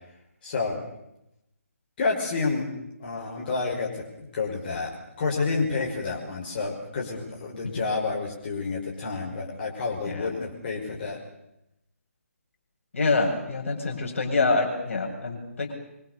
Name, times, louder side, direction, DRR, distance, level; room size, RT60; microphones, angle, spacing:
voice 1, 0.4-0.8 2.0-2.7 3.0-4.9 5.2-11.2, left 4 dB, 35° left, -2 dB, 5.5 m, -29 dB
voice 2, 12.9-15.7, left 3 dB, 55° left, 2 dB, 7.6 m, -26 dB
26.0 x 25.0 x 6.8 m, 0.84 s
figure-of-eight pair, 145°, 8 cm